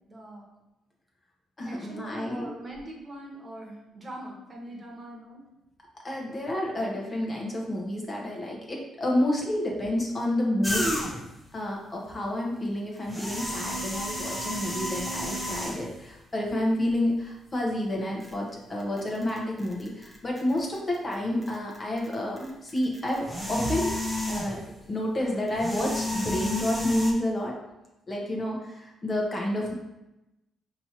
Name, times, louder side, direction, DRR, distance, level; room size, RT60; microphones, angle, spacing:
voice 1, 0.1-0.5 1.6-5.4, right 1 dB, 30° right, -1 dB, 1.3 m, -42 dB
voice 2, 1.6-2.5 6.0-10.9 11.5-23.9 24.3-24.6 24.9-27.5 28.1-29.7, left 1 dB, 30° left, -2 dB, 1.1 m, -29 dB
sound 1, 10.6-11.4 13.0-16.0 16.9-17.0 18.2-18.3 18.8-21.1 21.4-24.8 25.5-27.1, left 1 dB, ahead, 0.8 m, -32 dB
5.3 x 3.0 x 2.9 m, 0.94 s
cardioid pair, 90°, 0 cm